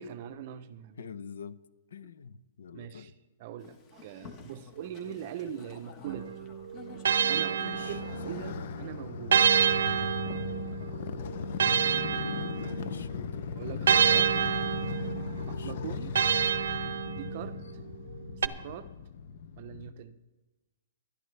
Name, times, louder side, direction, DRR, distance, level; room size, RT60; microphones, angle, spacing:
voice 1, 0.0-1.1 2.7-3.1 3.4-6.4 7.3-9.5 13.5-14.5 15.5-16.2 17.1-17.6 18.4-19.0 19.6-20.2, right 9 dB, 35° right, 12 dB, 0.6 m, -42 dB
voice 2, 1.0-1.6 1.9-3.1 7.3-8.0 8.3-8.6 11.8-13.9 15.4-15.9, left 6 dB, 75° left, 15 dB, 0.7 m, -46 dB
Boat Water vehicle, 3.6-8.6, left 5 dB, 20° left, 1.2 m, -51 dB
sound 1, 6.1-8.5 9.3-13.1 13.9-17.6 18.4-18.5, right 7 dB, 75° right, 0.6 m, -28 dB
Motorcycle, 7.7-19.9, left 6 dB, 40° left, 0.6 m, -38 dB
20.0 x 11.5 x 3.3 m, 1.2 s
hypercardioid pair, 170°, 0 cm